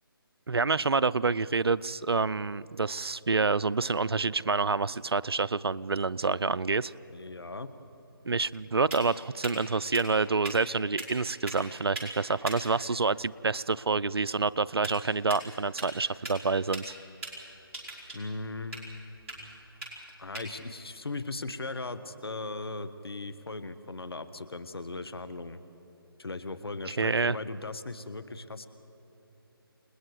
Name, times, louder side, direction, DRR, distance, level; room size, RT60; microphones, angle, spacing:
voice 1, 0.5-6.9 8.3-16.9 27.0-27.4, right 4 dB, 85° right, 18 dB, 0.5 m, -28 dB
voice 2, 7.1-7.7 18.1-19.0 20.2-25.6 26.2-28.7, left 3 dB, 80° left, 11 dB, 1.3 m, -38 dB
sound 1, 7.7-22.3, right 2 dB, 35° right, 4.8 m, -44 dB
29.0 x 20.0 x 4.8 m, 3.0 s
figure-of-eight pair, 150°, 13 cm